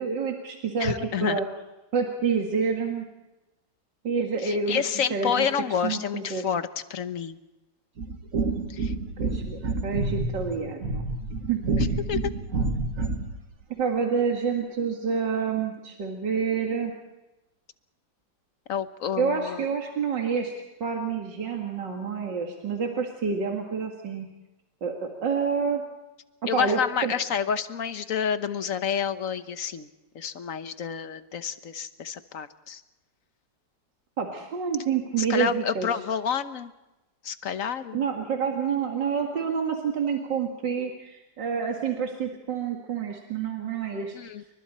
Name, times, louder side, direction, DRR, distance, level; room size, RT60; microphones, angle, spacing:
voice 1, 0.0-0.9 1.2-1.5 1.9-3.1 4.0-4.8 5.1-5.5 5.8-6.5 8.4-11.1 11.5-11.6 13.8-16.9 19.2-20.5 20.8-24.3 24.8-25.8 26.5-27.1 34.2-36.0 37.9-44.2, right 6 dB, 75° right, 1 dB, 2.6 m, -28 dB
voice 2, 0.8-1.4 4.4-7.4 8.7-8.9 11.8-12.3 18.7-19.6 26.5-29.9 30.1-32.8 35.3-36.7 37.2-38.0 44.1-44.4, left 7 dB, 50° left, 11 dB, 1.3 m, -29 dB
sound 1, 8.0-13.4, right 3 dB, 45° right, 2.1 m, -28 dB
29.0 x 24.5 x 4.3 m, 1.0 s
omnidirectional pair, 1.9 m